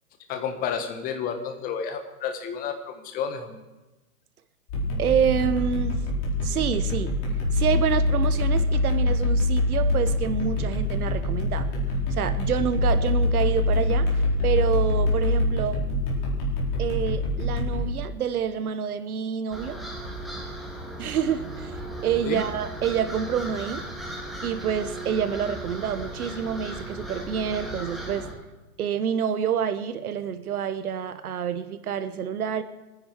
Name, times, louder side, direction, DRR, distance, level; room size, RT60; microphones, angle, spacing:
voice 1, 0.3-3.6 22.2-22.4, left 7 dB, 20° left, 6 dB, 1.3 m, -31 dB
sound 1, 4.7-17.9, left 2 dB, 35° left, 4.7 m, -24 dB
voice 2, 5.0-6.0 6.4-7.1 7.5-11.7 12.2-15.8 16.8-19.8 21.0-23.9 24.4-28.3 28.8-32.6, right 8 dB, 65° right, 11 dB, 1.2 m, -27 dB
sound 2, 19.5-28.3, right 1 dB, ahead, 1.7 m, -36 dB
24.0 x 10.0 x 4.6 m, 1.1 s
hypercardioid pair, 150°, 47 cm